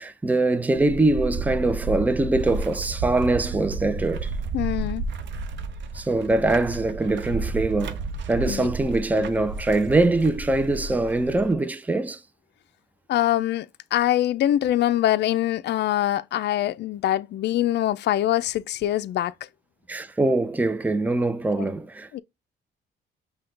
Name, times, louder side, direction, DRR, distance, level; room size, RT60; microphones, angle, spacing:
voice 1, 0.0-4.3 5.9-8.0 8.3-12.2 19.9-22.2, right 2 dB, 10° right, 0.5 m, -23 dB
sound 1, 0.7-11.5, right 4 dB, 65° right, 0.7 m, -32 dB
voice 2, 4.5-5.0 8.5-8.7 13.1-19.3 21.6-21.7 22.1-22.2, left 13 dB, 60° left, 0.4 m, -24 dB
5.6 x 2.3 x 3.8 m
cardioid pair, 90°, 20 cm